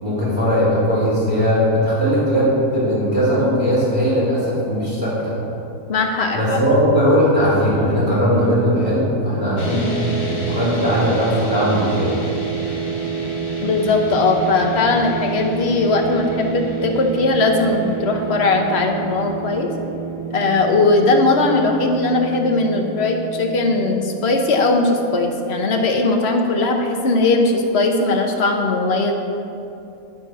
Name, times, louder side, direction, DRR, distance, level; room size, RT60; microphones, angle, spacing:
voice 1, 0.0-5.3 6.3-12.2, equal, 30° right, -9 dB, 2.8 m, -18 dB
voice 2, 5.9-6.6 13.6-19.7 20.3-29.1, left 3 dB, 50° left, 3 dB, 1.1 m, -19 dB
sound 1, 9.6-25.9, right 5 dB, 80° left, 2.3 m, -29 dB
9.7 x 6.0 x 6.0 m, 2.8 s
omnidirectional pair, 1.6 m